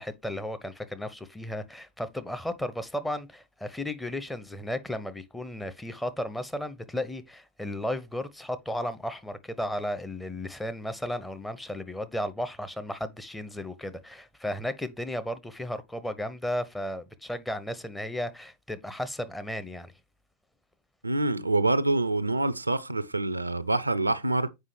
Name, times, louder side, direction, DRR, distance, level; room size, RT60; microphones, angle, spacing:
voice 1, 0.0-19.9, left 1 dB, 5° left, 0.6 m, -34 dB
voice 2, 21.0-24.5, right 2 dB, 80° right, 0.4 m, -26 dB
7.4 x 4.8 x 3.2 m
figure-of-eight pair, 90°, 0 cm